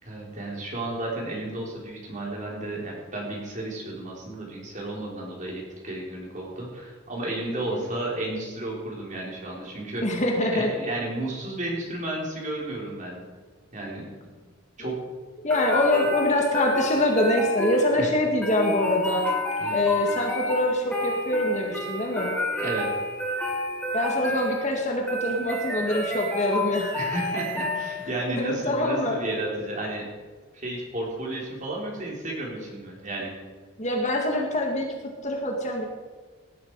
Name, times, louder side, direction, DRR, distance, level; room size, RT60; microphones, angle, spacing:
voice 1, 0.0-10.1 10.4-13.2 13.7-14.0 14.8-15.0 18.0-18.1 19.6-19.8 22.6-22.9 26.9-30.1 30.5-33.3, right 1 dB, 35° right, -2 dB, 4.2 m, -32 dB
voice 2, 10.0-10.7 14.8-14.9 15.4-19.3 19.7-22.3 23.9-27.0 28.4-29.2 33.8-34.9 35.2-35.9, left 1 dB, 35° left, 1 dB, 2.1 m, -24 dB
sound 1, 15.5-28.3, left 1 dB, 5° left, 2.3 m, -30 dB
18.5 x 11.0 x 4.9 m, 1.4 s
head